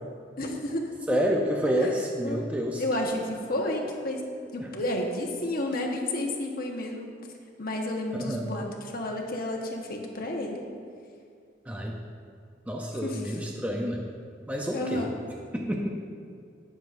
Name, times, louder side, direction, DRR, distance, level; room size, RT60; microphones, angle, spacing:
voice 1, 0.4-0.9 1.7-1.9 2.2-2.4 2.8-4.2 4.5-7.1 7.6-10.6 13.0-13.4 14.7-15.1, left 1 dB, 50° left, 1 dB, 1.2 m, -31 dB
voice 2, 1.1-2.8 4.6-4.7 8.1-8.5 11.7-12.0 12.7-14.1 14.5-15.1 15.5-15.9, equal, 10° right, 0 dB, 0.5 m, -29 dB
17.5 x 7.0 x 2.6 m, 2.4 s
head